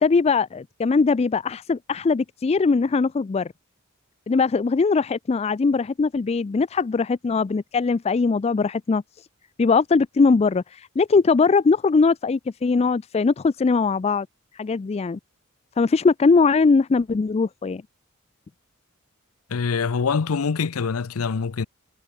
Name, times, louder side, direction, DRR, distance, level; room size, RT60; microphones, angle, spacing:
voice 1, 0.0-3.5 4.3-9.3 9.6-14.3 14.5-15.2 15.8-17.8, left 4 dB, 30° left, 0.3 m, -21 dB
voice 2, 19.5-21.7, left 5 dB, 85° left, 0.6 m, -24 dB
head